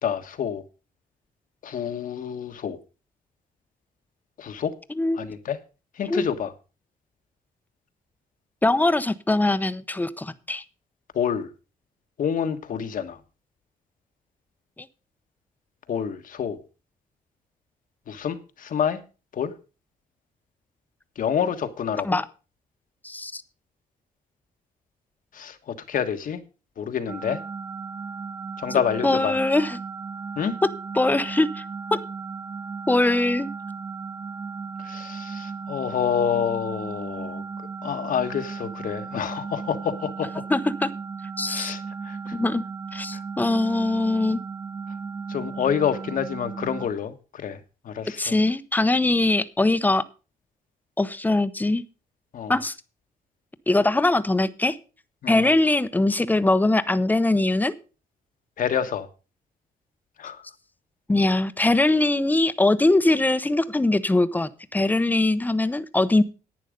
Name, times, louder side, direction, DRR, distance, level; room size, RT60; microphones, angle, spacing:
voice 1, 0.0-0.6 1.6-2.8 4.4-4.7 5.2-5.6 6.0-6.5 11.1-11.5 12.2-13.2 15.9-16.6 18.1-19.0 19.3-19.5 21.2-22.1 25.3-26.4 26.8-27.4 28.6-29.4 30.4-30.6 34.8-37.4 37.8-40.4 41.5-42.3 43.1-43.2 45.3-47.1 47.4-47.6 47.8-48.3 52.3-52.5 55.2-55.5 58.6-59.1 60.2-60.4, left 8 dB, 60° left, 1.4 m, -28 dB
voice 2, 4.9-5.3 6.1-6.3 8.6-10.6 22.0-22.2 23.0-23.4 28.7-29.8 30.6-30.7 30.9-31.6 31.9-32.0 32.9-33.5 40.5-40.9 41.4-41.8 42.3-42.6 42.9-44.4 48.2-50.0 51.0-51.8 52.5-52.8 53.7-54.8 55.3-57.7 61.1-66.2, left 2 dB, 10° left, 0.8 m, -22 dB
sound 1, 27.1-46.9, right 5 dB, 25° right, 1.3 m, -35 dB
11.0 x 9.2 x 5.1 m
cardioid pair, 110°, 15 cm